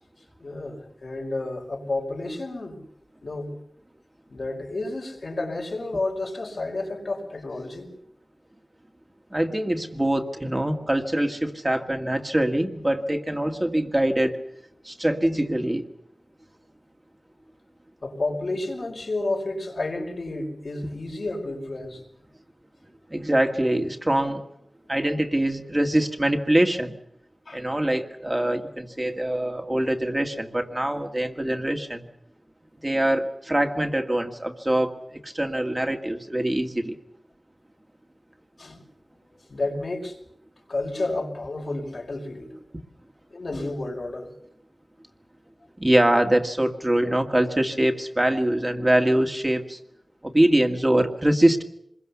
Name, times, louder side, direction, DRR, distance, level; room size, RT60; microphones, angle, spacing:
voice 1, 0.4-2.8 3.2-3.5 4.3-7.9 18.0-22.0 27.5-27.6 38.6-38.8 39.3-40.2 40.7-42.5 43.3-44.3, left 2 dB, 70° left, 5.2 m, -31 dB
voice 2, 9.3-14.4 14.8-15.9 23.1-24.4 24.9-27.0 27.5-32.1 32.8-34.9 35.2-37.0 45.8-49.8 50.2-51.6, right 1 dB, 20° right, 2.0 m, -23 dB
26.0 x 21.5 x 7.1 m
wide cardioid pair, 65°, 0 cm